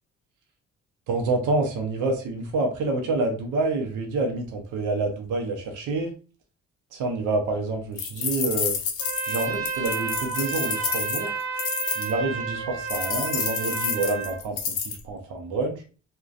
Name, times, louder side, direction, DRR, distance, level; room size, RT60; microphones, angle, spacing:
voice 1, 1.1-6.1 6.9-8.8 9.3-11.3 12.0-15.8, right 3 dB, 90° right, 3 dB, 0.6 m, -27 dB
sound 1, 8.0-12.1 12.9-15.0, left 7 dB, 85° left, 0.6 m, -29 dB
Trumpet, 9.0-14.4, right 6 dB, 65° right, 1.0 m, -31 dB
2.5 x 2.2 x 2.3 m, 0.36 s
cardioid pair, 90°, 30 cm